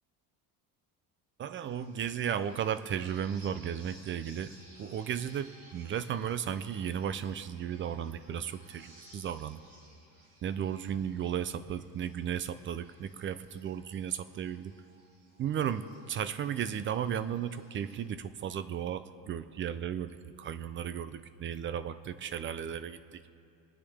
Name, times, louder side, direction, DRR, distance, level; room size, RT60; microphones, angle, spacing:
voice 1, 1.4-4.5 4.8-9.6 10.4-14.7 15.4-23.2, right 9 dB, 35° right, 13 dB, 0.4 m, -35 dB
sound 1, 1.6-18.1, right 1 dB, 60° right, 2.8 m, -59 dB
25.0 x 9.9 x 3.5 m, 2.6 s
cardioid pair, 145°, 39 cm